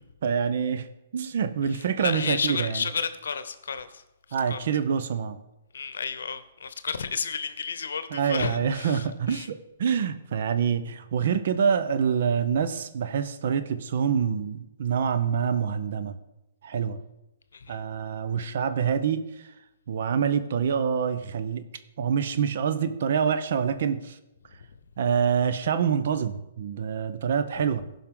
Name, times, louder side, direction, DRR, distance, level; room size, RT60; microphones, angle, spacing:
voice 1, 0.2-2.8 4.3-5.4 8.1-16.1 16.6-17.0 17.7-19.5 19.9-21.7 22.0-24.2 25.0-27.9, right 7 dB, 60° right, 0.7 m, -26 dB
voice 2, 1.7-4.0 4.5-4.6 5.7-9.5 17.5-17.8 24.6-24.8, left 6 dB, 85° left, 0.8 m, -32 dB
15.5 x 5.5 x 3.7 m
hypercardioid pair, 150°, 0 cm